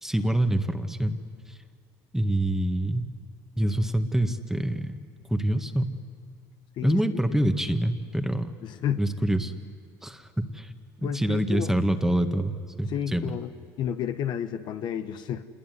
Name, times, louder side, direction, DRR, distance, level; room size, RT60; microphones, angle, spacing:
voice 1, 0.0-1.2 1.5-1.6 2.1-3.1 3.6-5.0 5.3-5.9 6.8-8.5 9.0-9.5 10.0-10.7 11.0-12.5 12.8-13.3, right 1 dB, 5° right, 7 dB, 1.8 m, -26 dB
voice 2, 6.8-7.2 8.6-9.0 11.0-11.7 12.9-13.5 13.8-15.5, left 9 dB, 55° left, 8 dB, 1.3 m, -31 dB
27.5 x 21.5 x 9.6 m, 2.4 s
supercardioid pair, 95°, 9 cm